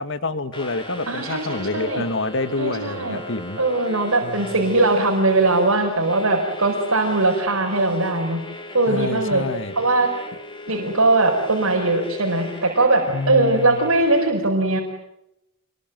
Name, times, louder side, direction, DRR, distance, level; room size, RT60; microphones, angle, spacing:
voice 1, 0.0-3.6 4.2-4.5 8.9-9.7 13.1-13.9, left 3 dB, 60° left, 10 dB, 1.9 m, -28 dB
sound 1, 0.5-14.3, left 1 dB, 25° left, 4.6 m, -37 dB
voice 2, 1.1-2.0 2.6-3.2 3.6-8.4 8.7-9.4 9.8-10.1 10.7-14.8, right 2 dB, 90° right, 0 dB, 4.8 m, -20 dB
27.5 x 22.0 x 9.2 m, 0.86 s
head